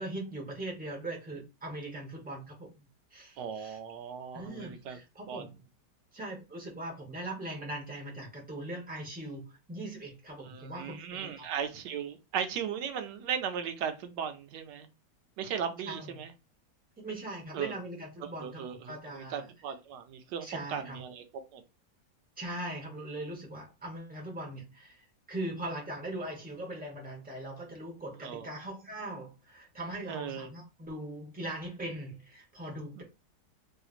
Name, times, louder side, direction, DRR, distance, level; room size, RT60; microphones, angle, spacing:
voice 1, 0.0-2.8 3.1-3.8 4.3-5.6 6.1-11.5 15.9-16.2 17.0-19.5 20.4-21.0 22.4-33.0, right 1 dB, 10° right, 0.5 m, -40 dB
voice 2, 3.4-5.0 5.3-5.5 10.4-14.9 15.4-16.3 17.5-17.7 18.2-21.2 21.5-21.6 28.2-28.5 30.1-30.5 33.0-33.1, right 7 dB, 80° right, 1.2 m, -37 dB
3.2 x 2.8 x 2.4 m
omnidirectional pair, 1.9 m